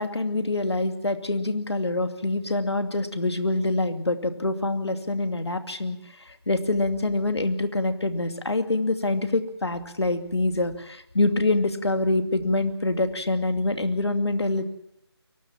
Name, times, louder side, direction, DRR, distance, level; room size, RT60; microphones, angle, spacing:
voice 1, 0.0-6.0 6.3-14.6, left 2 dB, 75° left, 8 dB, 2.4 m, -25 dB
23.0 x 19.0 x 7.3 m, 0.86 s
figure-of-eight pair, 160°, 14 cm